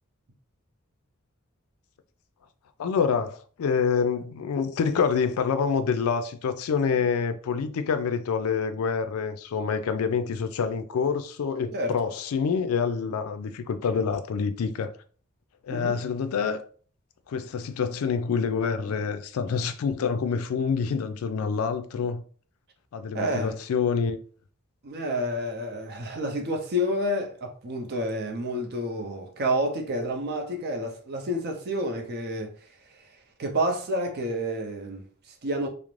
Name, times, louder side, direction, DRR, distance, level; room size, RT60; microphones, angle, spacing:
voice 1, 2.8-14.9 15.6-16.6 17.3-22.2 22.9-24.2, left 6 dB, 75° left, 0.3 m, -27 dB
voice 2, 23.1-23.5 24.8-35.7, equal, 50° right, 0.5 m, -29 dB
2.4 x 2.0 x 3.0 m
head